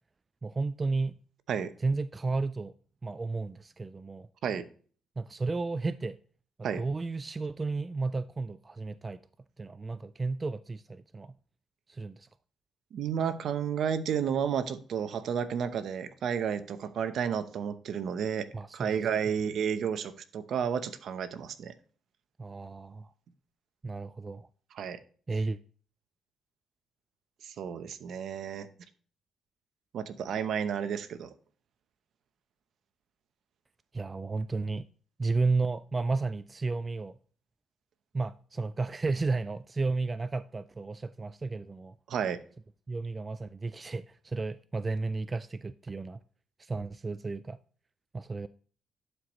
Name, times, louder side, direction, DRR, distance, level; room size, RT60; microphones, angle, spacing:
voice 1, 0.4-1.2 1.8-2.7 3.0-4.3 5.2-6.2 6.8-9.2 9.6-11.4 11.9-12.3 18.5-18.9 19.3-19.4 22.4-23.1 23.8-24.5 25.3-25.6 33.9-34.9 35.2-37.2 38.1-42.0 42.9-46.2 46.6-47.6 48.1-48.5, right 3 dB, 25° right, 0.3 m, -33 dB
voice 2, 12.9-18.5 18.7-21.7 24.7-25.0 27.4-28.7 29.9-31.3 42.1-42.4, right 7 dB, 65° right, 0.8 m, -32 dB
11.0 x 4.8 x 3.0 m
cardioid pair, 90°, 0 cm